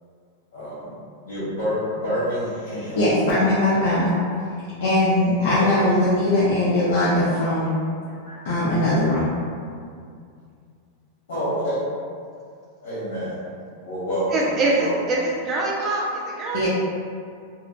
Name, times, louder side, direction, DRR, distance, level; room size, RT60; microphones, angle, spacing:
voice 1, 0.5-0.9 1.2-3.0 5.5-6.0 7.6-7.7 8.1-8.4 11.3-11.8 12.8-13.4 13.8-14.5 14.8-14.9, equal, 85° left, -11 dB, 1.2 m, -28 dB
voice 2, 3.0-4.1 4.8-7.7 8.4-9.3 16.5-16.7, left 1 dB, 60° left, -9 dB, 0.5 m, -20 dB
voice 3, 14.3-16.7, right 2 dB, 20° right, -4 dB, 0.4 m, -24 dB
2.9 x 2.1 x 2.5 m, 2.3 s
supercardioid pair, 180°, 0 cm